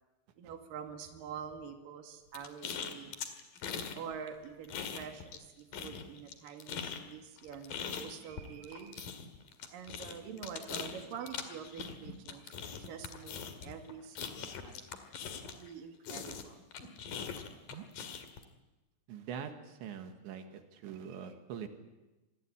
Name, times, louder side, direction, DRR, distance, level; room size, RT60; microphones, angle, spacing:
voice 1, 0.4-3.2 3.9-9.1 9.7-14.9 15.4-16.6 21.2-21.3, right 7 dB, 55° right, 5 dB, 3.5 m, -46 dB
sound 1, 2.3-4.0 4.3-5.5 5.7-15.7 16.1-18.4, left 7 dB, 55° left, 3.2 m, -41 dB
voice 2, 17.7-18.2 19.1-21.7, right 8 dB, 80° right, 6 dB, 4.0 m, -44 dB
26.5 x 20.5 x 8.8 m, 1.1 s
omnidirectional pair, 5.3 m